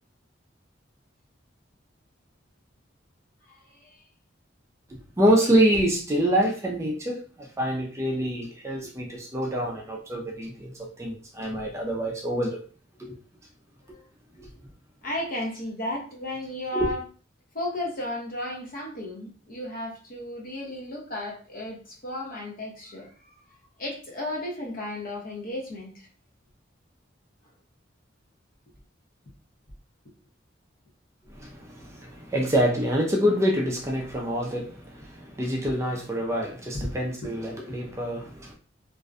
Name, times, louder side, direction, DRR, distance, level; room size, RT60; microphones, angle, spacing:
voice 1, 3.5-4.0 8.8-8.9 13.9-14.0 15.0-17.0 17.5-23.3 23.8-26.1 36.8-36.9 37.2-37.3, left 1 dB, 50° left, 0.8 m, -34 dB
voice 2, 5.2-10.7 11.0-12.6 13.0-13.1 16.7-16.9 31.3-38.5, equal, 15° right, 0.4 m, -26 dB
2.5 x 2.1 x 2.4 m
head